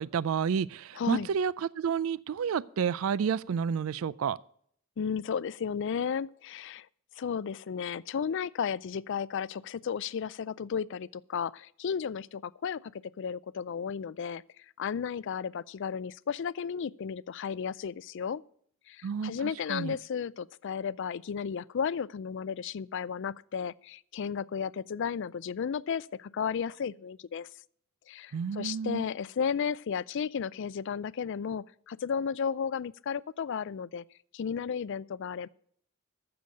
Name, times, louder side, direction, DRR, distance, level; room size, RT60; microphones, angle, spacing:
voice 1, 0.0-4.4 19.0-20.0 28.3-29.1, right 7 dB, 75° right, 0.4 m, -30 dB
voice 2, 1.0-1.3 5.0-6.9 7.2-14.4 14.8-18.4 18.9-27.5 28.1-34.0 34.3-35.5, left 7 dB, 60° left, 0.4 m, -34 dB
14.5 x 6.9 x 5.2 m
head